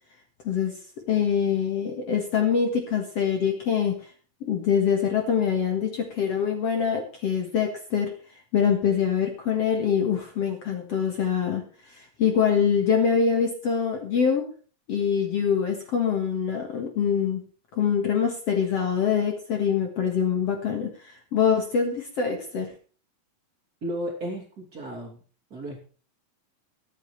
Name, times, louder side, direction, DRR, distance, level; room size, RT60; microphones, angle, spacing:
voice 1, 0.4-0.8 1.1-4.1 4.4-8.1 8.5-14.5 14.9-17.4 17.7-22.7, left 7 dB, 50° left, 3 dB, 2.3 m, -24 dB
voice 2, 23.8-25.2 25.5-25.8, equal, 30° right, 0 dB, 3.1 m, -34 dB
23.5 x 8.6 x 3.2 m, 0.40 s
omnidirectional pair, 4.0 m